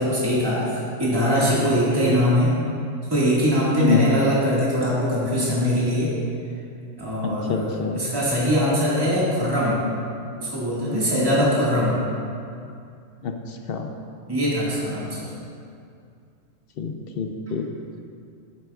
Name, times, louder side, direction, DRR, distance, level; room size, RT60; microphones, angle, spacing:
voice 1, 0.0-2.5 3.1-6.1 7.0-9.8 10.4-11.9 14.3-15.3, equal, 20° right, -8 dB, 1.8 m, -22 dB
voice 2, 3.8-4.1 7.2-8.0 13.2-13.3 13.7-13.9 16.8-17.7, left 5 dB, 60° left, 4 dB, 0.7 m, -26 dB
10.5 x 8.8 x 2.4 m, 2.4 s
omnidirectional pair, 1.3 m